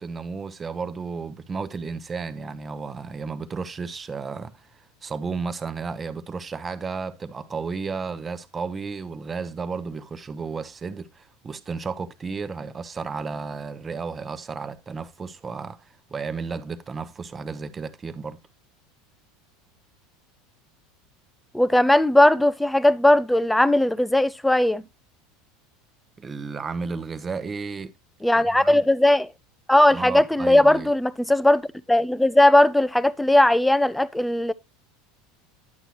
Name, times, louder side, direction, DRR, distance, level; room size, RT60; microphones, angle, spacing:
voice 1, 0.0-18.4 26.2-27.9 28.4-28.8 29.9-30.9, right 5 dB, 20° right, 1.0 m, -33 dB
voice 2, 21.5-24.8 28.2-29.3 29.7-31.6 31.9-34.5, left 1 dB, 5° left, 0.6 m, -18 dB
11.0 x 8.0 x 3.0 m
supercardioid pair, 125°, 0 cm